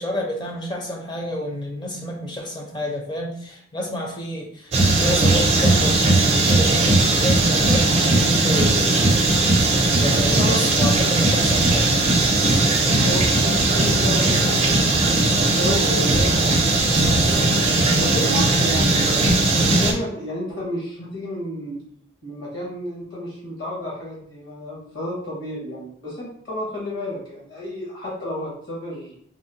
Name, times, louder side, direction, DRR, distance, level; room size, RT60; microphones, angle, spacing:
voice 1, 0.0-6.0 6.3-9.3 10.0-12.0, left 1 dB, 25° left, 0 dB, 0.5 m, -30 dB
sound 1, 4.7-19.9, right 2 dB, 35° right, 0.4 m, -18 dB
voice 2, 10.1-10.7 13.0-19.2 19.6-21.8 22.2-29.2, left 1 dB, 55° left, -7 dB, 1.2 m, -31 dB
3.6 x 2.0 x 2.7 m, 0.63 s
head